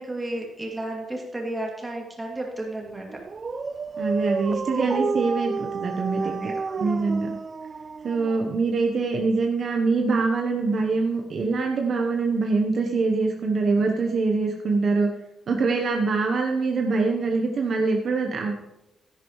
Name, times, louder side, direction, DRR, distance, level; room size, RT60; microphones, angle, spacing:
voice 1, 0.0-3.1 4.9-5.0 6.2-6.9, right 1 dB, 15° right, -1 dB, 2.4 m, -33 dB
Dog, 3.1-8.8, right 4 dB, 35° right, 0.4 m, -30 dB
voice 2, 4.0-6.5 6.8-7.3 8.0-15.1 15.5-18.6, right 4 dB, 50° right, 2 dB, 1.0 m, -24 dB
13.0 x 11.0 x 3.1 m, 0.94 s
cardioid pair, 125°, 0 cm